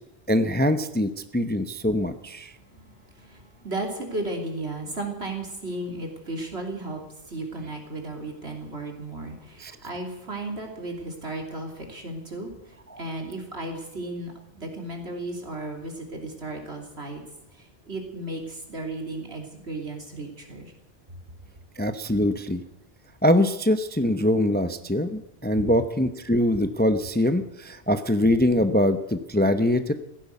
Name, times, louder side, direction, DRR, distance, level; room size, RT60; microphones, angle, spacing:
voice 1, 0.3-2.5 9.6-9.7 12.9-13.0 21.8-22.6 23.2-29.9, left 1 dB, 10° left, 10 dB, 0.7 m, -23 dB
voice 2, 2.6-7.0 7.3-12.5 13.0-17.2 17.5-20.7, right 2 dB, 70° right, 2 dB, 3.4 m, -35 dB
16.0 x 11.0 x 8.3 m, 0.90 s
omnidirectional pair, 1.1 m